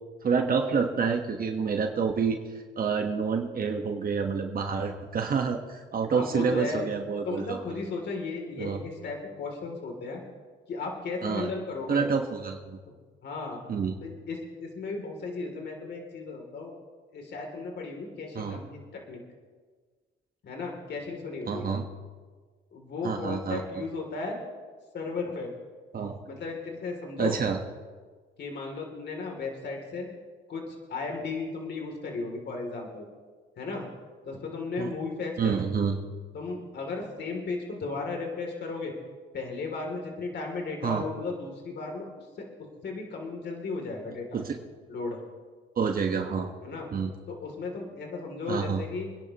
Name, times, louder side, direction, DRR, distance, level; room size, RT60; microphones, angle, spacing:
voice 1, 0.2-2.4 2.8-7.8 8.6-8.8 11.2-11.5 11.9-12.8 13.7-13.9 18.3-18.6 21.5-21.8 23.0-23.6 25.9-26.2 27.2-27.6 34.8-34.9 35.4-36.0 40.8-41.1 44.3-44.6 45.8-46.5 46.9-47.1 48.5-48.8, right 5 dB, 45° right, 3 dB, 1.3 m, -28 dB
voice 2, 6.1-6.8 7.2-10.2 10.7-12.0 13.2-13.6 14.0-16.7 17.1-19.2 20.4-21.7 22.7-24.4 24.9-25.5 26.2-27.4 28.4-30.1 30.5-33.0 33.6-33.9 34.2-35.6 36.3-38.9 39.3-44.4 44.9-45.2 46.6-46.9 47.3-49.1, left 3 dB, 60° left, 1 dB, 2.9 m, -35 dB
26.5 x 10.5 x 3.0 m, 1.5 s
cardioid pair, 90°, 20 cm